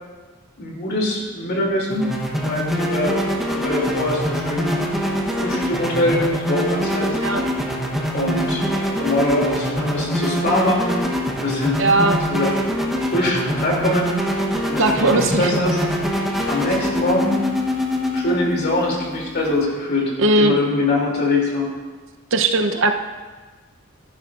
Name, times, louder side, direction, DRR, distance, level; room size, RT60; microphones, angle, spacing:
voice 1, 0.6-2.1 2.4-3.2 3.5-4.8 5.4-7.2 8.1-8.7 9.0-11.8 12.3-12.5 13.1-14.2 14.7-15.8 16.5-17.4 18.1-21.7, left 1 dB, 50° left, -2 dB, 2.8 m, -23 dB
sound 1, 1.9-19.6, equal, ahead, 0.9 m, -24 dB
voice 2, 11.8-12.2 14.8-15.6 20.2-20.6 22.3-22.9, right 2 dB, 60° right, 6 dB, 0.8 m, -18 dB
16.5 x 9.8 x 2.5 m, 1.4 s
head